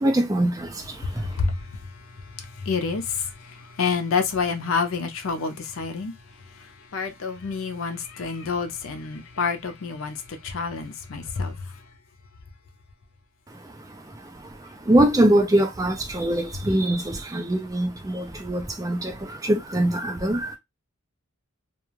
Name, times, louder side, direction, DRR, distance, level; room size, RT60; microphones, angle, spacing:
voice 1, 0.0-1.4 13.5-20.6, right 1 dB, 15° right, 0.4 m, -23 dB
voice 2, 2.6-3.3 3.8-6.1 6.9-10.2 10.4-11.5, left 5 dB, 75° left, 0.5 m, -27 dB
2.4 x 2.2 x 3.0 m
head